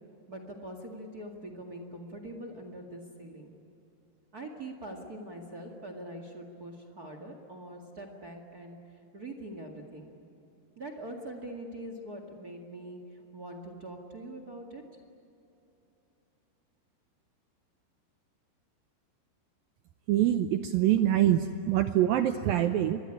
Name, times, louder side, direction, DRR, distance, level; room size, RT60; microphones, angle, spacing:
voice 1, 0.3-3.5 4.3-8.8 9.1-10.1 10.7-14.8, right 1 dB, 40° right, 5 dB, 1.3 m, -43 dB
voice 2, 20.1-23.0, right 12 dB, 85° right, 9 dB, 2.1 m, -25 dB
25.5 x 21.0 x 10.0 m, 2.9 s
omnidirectional pair, 5.0 m